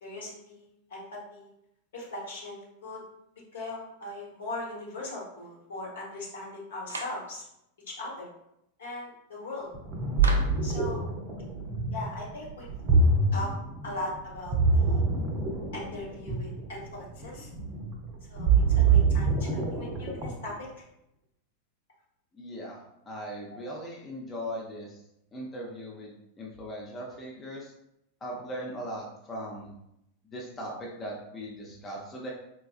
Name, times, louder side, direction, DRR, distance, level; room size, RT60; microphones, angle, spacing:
voice 1, 0.0-1.5 1.9-3.0 3.5-7.4 7.9-8.3 8.8-9.7 10.6-11.0 11.9-12.7 13.3-13.5 13.8-15.0 15.7-17.5 18.3-20.8 23.5-23.6, left 2 dB, 65° left, -4 dB, 1.0 m, -39 dB
Clapping, 6.9-7.3 10.2-10.7, right 2 dB, 70° right, 0.3 m, -36 dB
Ocean, 9.7-20.5, right 4 dB, 35° right, 0.6 m, -25 dB
voice 2, 22.3-25.0 25.3-27.7 28.2-29.7 30.3-32.3, equal, 20° left, -3 dB, 0.6 m, -39 dB
4.1 x 2.3 x 2.4 m, 0.81 s
figure-of-eight pair, 90°, 0 cm